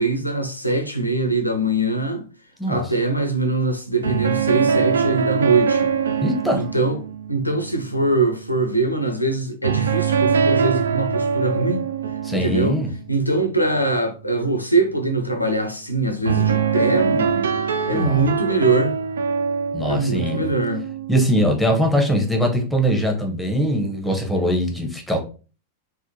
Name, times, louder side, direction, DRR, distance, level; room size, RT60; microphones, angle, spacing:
voice 1, 0.0-2.3 2.7-5.9 6.5-7.0 7.3-11.8 12.3-12.8 13.1-17.5 17.9-18.9 19.8-20.8, right 2 dB, 85° left, 0.5 m, -22 dB
sound 1, 4.0-8.9 9.6-13.4 16.2-21.8, right 6 dB, 65° right, 0.3 m, -23 dB
voice 2, 6.2-6.6 12.2-12.9 17.9-18.3 19.7-20.4 21.1-25.2, equal, ahead, 0.8 m, -21 dB
3.5 x 2.2 x 2.7 m
figure-of-eight pair, 90°, 0 cm